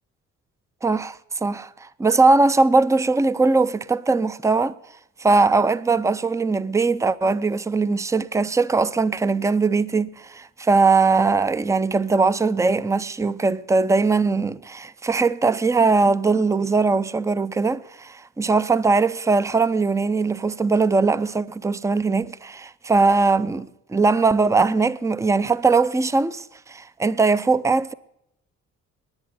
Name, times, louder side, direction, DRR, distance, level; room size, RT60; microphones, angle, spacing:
voice 1, 0.8-4.7 5.2-27.9, right 3 dB, 10° right, 0.5 m, -20 dB
10.5 x 10.0 x 9.5 m
cardioid pair, 90°, 30 cm